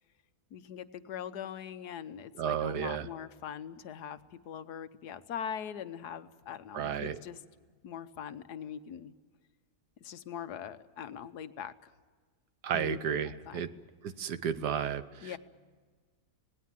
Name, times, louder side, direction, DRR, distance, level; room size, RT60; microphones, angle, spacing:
voice 1, 0.5-7.4 7.8-9.1 10.0-11.7 12.7-13.6 15.2-15.4, left 8 dB, 75° left, 11 dB, 1.5 m, -42 dB
voice 2, 2.4-3.1 6.7-7.2 12.6-13.7 14.0-15.4, right 8 dB, 80° right, 12 dB, 1.5 m, -33 dB
27.0 x 19.0 x 7.5 m, 1.5 s
omnidirectional pair, 1.7 m